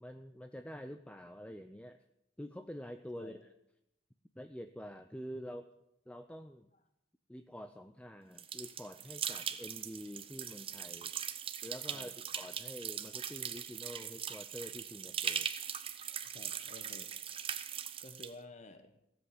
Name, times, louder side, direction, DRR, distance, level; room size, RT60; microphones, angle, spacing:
voice 1, 0.0-2.0 2.4-3.5 4.4-5.7 6.1-6.7 7.3-11.1 11.6-15.5, equal, 5° left, 8 dB, 0.5 m, -47 dB
sound 1, 8.4-18.3, right 8 dB, 30° right, 0.8 m, -40 dB
voice 2, 16.3-17.1 18.0-19.0, left 2 dB, 40° left, 8 dB, 1.1 m, -52 dB
16.0 x 7.9 x 9.7 m, 0.82 s
head